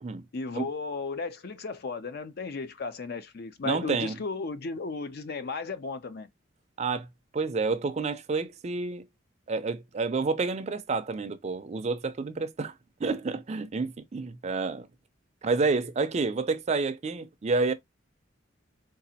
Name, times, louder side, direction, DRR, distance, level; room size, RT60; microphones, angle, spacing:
voice 1, 0.3-6.3, left 4 dB, 55° left, 0.5 m, -35 dB
voice 2, 3.6-4.2 6.8-7.1 7.3-9.1 9.5-12.7 13.0-14.9 15.4-17.7, right 4 dB, 35° right, 0.4 m, -29 dB
3.9 x 2.4 x 2.7 m
head